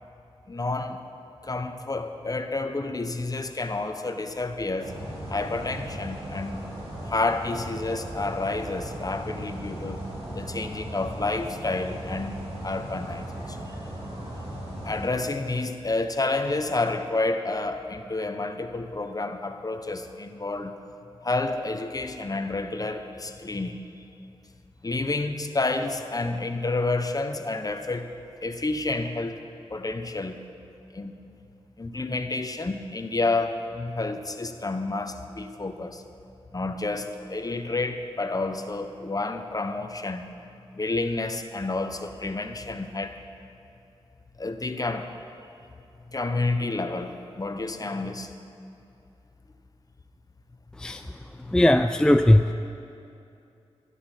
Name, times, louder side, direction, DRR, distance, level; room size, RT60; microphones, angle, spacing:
voice 1, 0.5-1.1 1.4-4.9 5.3-6.6 7.0-10.0 10.3-12.4 12.6-13.6 14.8-20.7 21.2-23.8 24.8-28.1 28.4-29.4 29.7-30.4 30.9-31.1 31.8-36.0 36.5-40.2 40.7-43.2 44.4-45.2 46.1-48.3, left 3 dB, 35° left, 7 dB, 0.9 m, -29 dB
sound 1, 4.8-15.1, right 1 dB, 60° right, 3.5 m, -37 dB
voice 2, 51.5-52.5, left 1 dB, 5° left, 8 dB, 0.4 m, -18 dB
12.5 x 11.5 x 5.7 m, 2.7 s
cardioid pair, 55°, 11 cm